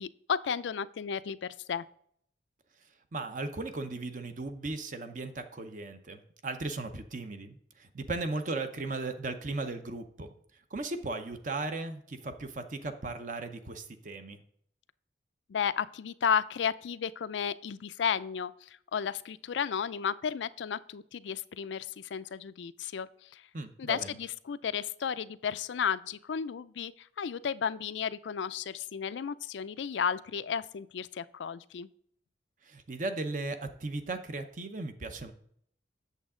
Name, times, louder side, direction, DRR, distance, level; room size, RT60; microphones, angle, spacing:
voice 1, 0.0-1.8 15.5-23.4 23.8-31.9, left 7 dB, 85° left, 16 dB, 0.4 m, -33 dB
voice 2, 3.1-10.3 10.7-14.4 23.5-24.2 32.6-35.3, right 3 dB, 45° right, 8 dB, 0.7 m, -37 dB
8.3 x 7.0 x 3.7 m, 0.66 s
head